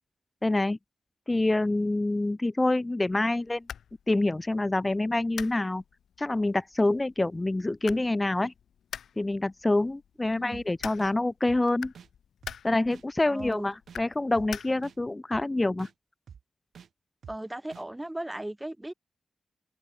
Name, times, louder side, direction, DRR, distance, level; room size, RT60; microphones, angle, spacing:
voice 1, 0.4-0.8 1.3-3.7 4.1-5.8 6.2-8.5 9.2-11.9 12.6-15.9, left 2 dB, 15° left, 0.8 m, -26 dB
sound 1, 3.1-15.1, left 8 dB, 85° left, 3.4 m, -46 dB
voice 2, 10.3-10.6 13.3-13.7 17.3-18.9, right 1 dB, 10° right, 4.2 m, -37 dB
sound 2, 10.5-10.6 11.0-11.1 11.5-11.6 11.9-12.1 12.4-12.6 12.9-13.0 13.4-13.5 13.9-14.0 14.4-14.5 14.8-15.0 15.3-15.4 15.8-15.9 16.3-16.4 16.8-16.9 17.2-17.4 17.7-17.8, right 7 dB, 65° right, 6.7 m, -47 dB
wide cardioid pair, 150°, 0 cm